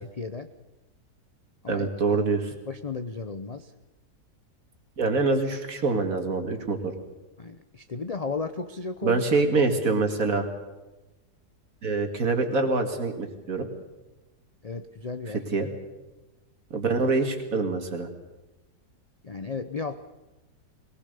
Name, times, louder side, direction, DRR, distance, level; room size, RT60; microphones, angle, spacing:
voice 1, 0.2-0.5 1.6-2.2 2.7-3.7 7.4-9.2 9.8-10.1 14.6-15.4 19.2-20.0, left 4 dB, 55° left, 9 dB, 0.4 m, -34 dB
voice 2, 1.7-2.5 5.0-6.9 9.0-10.5 11.8-13.7 15.5-15.7 16.7-18.1, right 3 dB, 55° right, 5 dB, 2.5 m, -25 dB
22.0 x 19.0 x 6.8 m, 1.1 s
omnidirectional pair, 1.8 m